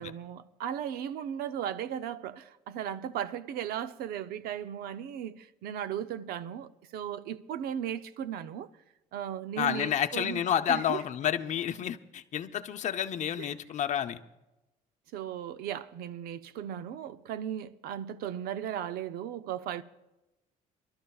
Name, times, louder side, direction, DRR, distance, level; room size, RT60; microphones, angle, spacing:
voice 1, 0.0-8.7 9.1-10.4 10.7-11.0 13.4-13.5 15.1-19.8, right 10 dB, 70° right, 0.7 m, -36 dB
voice 2, 9.6-14.2, left 9 dB, 50° left, 0.9 m, -30 dB
28.0 x 12.5 x 2.4 m
cardioid pair, 105°, 16 cm